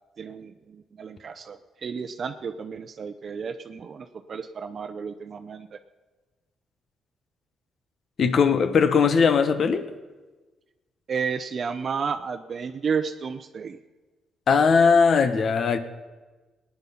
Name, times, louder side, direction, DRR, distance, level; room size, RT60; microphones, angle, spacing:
voice 1, 0.2-5.8 11.1-13.8, right 6 dB, 50° right, 8 dB, 0.7 m, -32 dB
voice 2, 8.2-9.9 14.5-15.8, left 5 dB, 55° left, 11 dB, 1.1 m, -19 dB
18.5 x 9.9 x 5.8 m, 1.3 s
cardioid pair, 85°, 0 cm